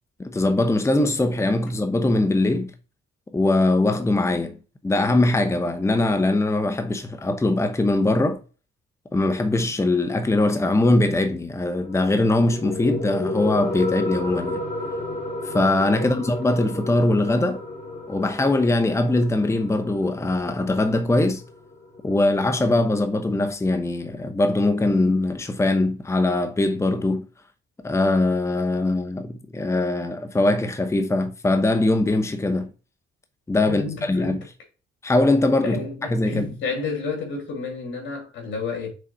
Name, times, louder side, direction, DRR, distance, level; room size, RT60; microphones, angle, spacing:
voice 1, 0.2-2.7 3.3-4.6 4.8-8.4 9.1-14.6 15.4-17.6 18.1-21.4 22.0-27.3 27.8-32.7 33.5-34.4 35.0-36.5, left 2 dB, 15° left, 0.9 m, -21 dB
sound 1, 11.8-22.8, left 2 dB, 40° left, 2.9 m, -32 dB
voice 2, 33.7-34.4 35.6-38.9, left 4 dB, 75° left, 3.0 m, -31 dB
6.4 x 4.1 x 4.2 m
cardioid pair, 90°, 20 cm